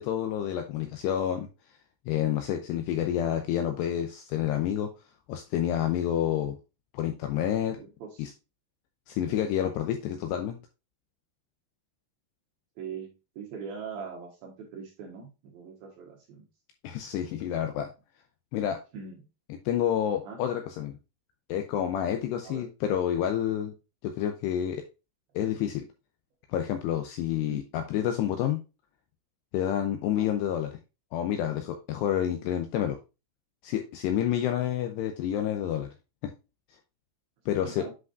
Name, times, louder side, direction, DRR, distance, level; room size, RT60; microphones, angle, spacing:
voice 1, 0.0-1.5 2.1-4.9 5.3-6.6 6.9-7.8 8.2-8.3 9.1-10.6 16.8-17.9 18.5-18.8 19.7-21.0 21.5-23.7 24.0-24.8 25.4-25.9 26.5-28.6 29.5-30.7 31.1-33.0 33.6-35.9 37.5-37.9, left 10 dB, 85° left, 6 dB, 2.5 m, -29 dB
voice 2, 7.8-8.3 12.8-16.4 18.9-19.2 20.2-20.4 22.4-22.7 27.5-27.6 30.1-30.3 37.6-37.9, right 6 dB, 70° right, 1 dB, 2.5 m, -41 dB
8.3 x 5.0 x 2.5 m, 0.28 s
omnidirectional pair, 5.5 m